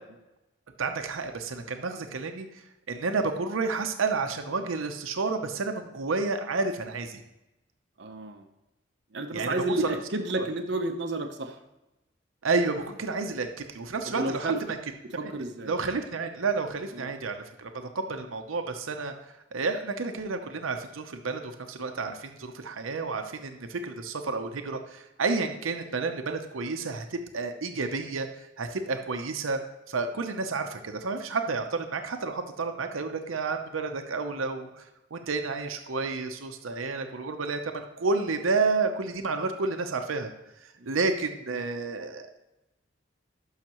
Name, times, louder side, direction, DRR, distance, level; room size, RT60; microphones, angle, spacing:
voice 1, 0.8-2.5 2.9-7.2 9.3-10.0 12.4-14.5 15.2-15.3 15.7-19.1 19.5-28.3 28.6-29.6 29.9-34.8 35.1-40.3 40.6-42.3, right 4 dB, 90° right, 6 dB, 0.7 m, -30 dB
voice 2, 8.0-8.4 9.1-11.6 14.1-14.6 15.2-15.7 16.9-17.1 40.8-41.0, right 2 dB, 55° right, 4 dB, 0.7 m, -31 dB
12.0 x 5.7 x 3.0 m, 0.96 s
head